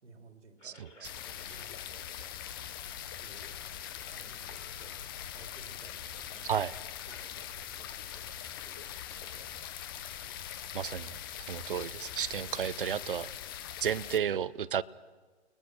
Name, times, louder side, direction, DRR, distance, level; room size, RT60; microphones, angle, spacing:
voice 1, 0.0-2.4 3.2-3.7 4.1-8.3 8.6-9.5 10.8-11.2 12.3-13.6, right 3 dB, 80° right, 5 dB, 3.4 m, -57 dB
sound 1, 0.6-12.6, left 5 dB, 80° left, 4.6 m, -58 dB
voice 2, 0.6-1.1 6.4-6.7 10.7-11.1 11.5-13.3 13.8-14.8, right 8 dB, 50° right, 19 dB, 0.7 m, -32 dB
sound 2, 1.0-14.2, left 10 dB, 20° left, 0.9 m, -42 dB
30.0 x 21.0 x 6.3 m, 1.3 s
hypercardioid pair, 155°, 35 cm